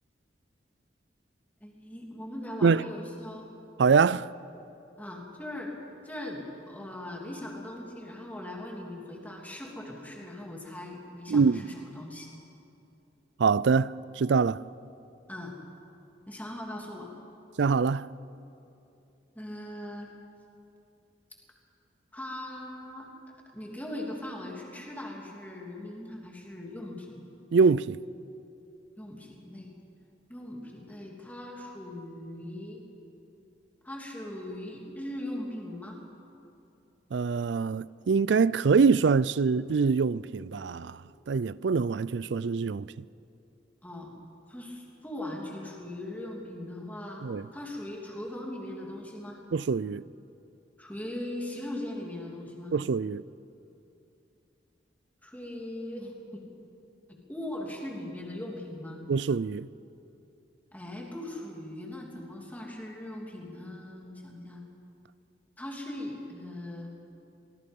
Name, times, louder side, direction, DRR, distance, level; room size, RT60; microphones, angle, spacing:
voice 1, 1.6-3.5 5.0-5.8 6.0-12.3 15.3-15.6 16.3-17.1 19.3-20.1 22.1-23.1 23.5-27.2 29.0-29.7 30.3-32.9 33.8-36.0 43.8-44.2 44.5-47.2 47.5-49.4 50.8-52.7 55.2-56.4 57.3-59.0 60.7-64.6 65.6-66.9, left 1 dB, 10° left, 2.9 m, -40 dB
voice 2, 3.8-4.3 11.3-11.6 13.4-14.6 17.6-18.1 27.5-28.0 37.1-41.0 41.3-42.9 47.2-47.4 49.5-50.0 52.7-53.2 59.1-59.7, right 5 dB, 70° right, 0.4 m, -24 dB
24.5 x 20.0 x 5.4 m
head